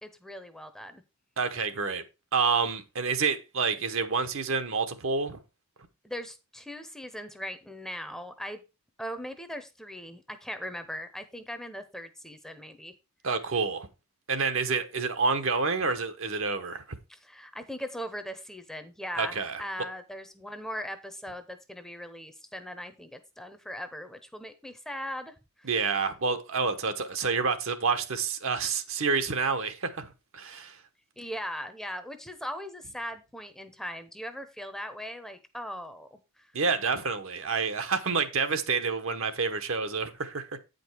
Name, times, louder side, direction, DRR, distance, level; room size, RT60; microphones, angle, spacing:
voice 1, 0.0-1.0 6.0-8.6 9.0-12.9 17.1-25.7 31.2-36.5, equal, ahead, 0.7 m, -39 dB
voice 2, 1.4-2.0 2.3-5.4 13.2-13.9 14.3-16.8 19.2-19.6 25.6-30.8 36.5-40.5, right 5 dB, 60° right, 1.0 m, -28 dB
8.8 x 5.2 x 4.5 m
head